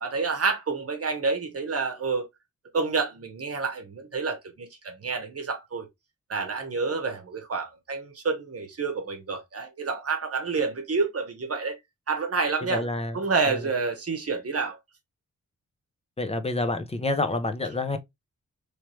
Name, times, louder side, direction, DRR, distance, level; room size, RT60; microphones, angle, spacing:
voice 1, 0.0-2.3 2.7-5.9 6.3-11.8 12.1-12.9 13.1-14.8, right 4 dB, 50° right, 0.9 m, -28 dB
voice 2, 12.7-13.2 13.5-13.6 16.2-18.0, left 2 dB, 20° left, 0.5 m, -28 dB
3.2 x 3.1 x 3.0 m
wide cardioid pair, 140°, 31 cm